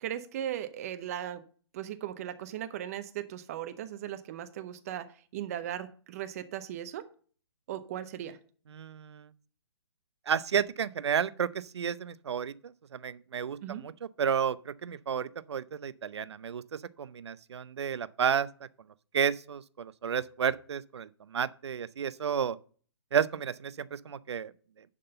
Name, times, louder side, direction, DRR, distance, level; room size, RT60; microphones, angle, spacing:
voice 1, 0.0-1.4 1.7-5.1 5.3-7.0 7.7-8.4 13.6-13.9, right 11 dB, 35° right, 0.7 m, -37 dB
voice 2, 8.7-9.3 10.3-12.5 12.9-13.9 14.2-18.5 19.1-22.6 23.1-24.5, right 7 dB, 75° right, 0.6 m, -31 dB
11.0 x 3.8 x 6.6 m
hypercardioid pair, 150°, 14 cm